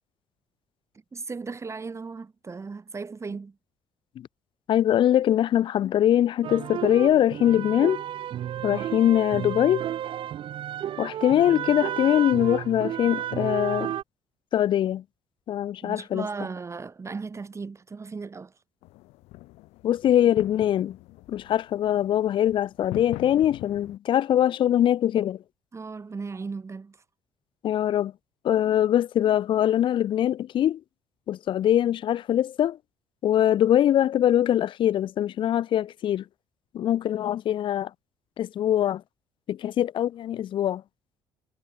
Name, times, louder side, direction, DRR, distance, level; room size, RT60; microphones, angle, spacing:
voice 1, 1.1-3.6 8.7-8.9 15.8-18.5 25.7-27.0, right 4 dB, 25° right, 2.4 m, -36 dB
voice 2, 4.7-8.0 8.6-9.8 11.0-13.9 14.5-15.0 15.5-16.3 19.8-21.0 21.3-25.4 27.6-28.1 28.4-30.8 31.3-32.8 33.2-36.2 36.7-37.9 38.4-39.0 39.5-40.8, left 11 dB, 50° left, 0.4 m, -22 dB
sound 1, 6.4-14.0, right 11 dB, 55° right, 0.6 m, -32 dB
sound 2, 18.8-24.0, left 20 dB, 85° left, 0.9 m, -42 dB
cardioid pair, 90°, 11 cm